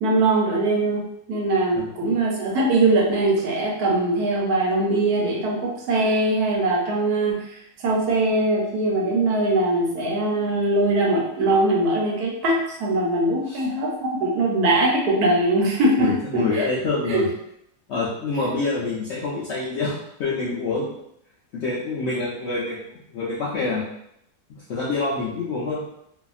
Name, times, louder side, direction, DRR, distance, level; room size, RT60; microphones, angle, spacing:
voice 1, 0.0-1.0 1.3-7.4 7.8-13.9 14.2-16.7 17.1-17.2, right 2 dB, 85° right, -2 dB, 1.2 m, -21 dB
voice 2, 16.0-17.3 17.9-20.9 21.5-22.8 23.1-23.8 24.5-25.8, left 3 dB, 65° left, -6 dB, 0.7 m, -26 dB
2.7 x 2.4 x 2.4 m, 0.75 s
omnidirectional pair, 1.6 m